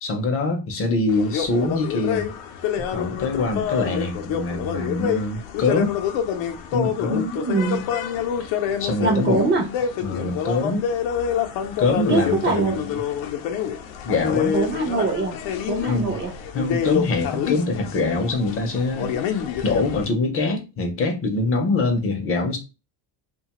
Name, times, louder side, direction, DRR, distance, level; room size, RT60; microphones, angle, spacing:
voice 1, 0.0-2.3 2.9-6.0 6.7-7.3 8.4-8.5 8.8-9.4 10.0-10.9 11.8-13.0 14.0-14.6 15.9-16.2 16.5-22.6, left 3 dB, 30° left, 0.5 m, -24 dB
sound 1, 1.1-20.1, left 8 dB, 75° left, 0.6 m, -27 dB
voice 2, 7.1-7.9 9.0-9.7 12.1-12.7 14.5-15.3 15.7-16.3, right 3 dB, 25° right, 0.4 m, -23 dB
2.7 x 2.2 x 2.9 m
cardioid pair, 165°, 46 cm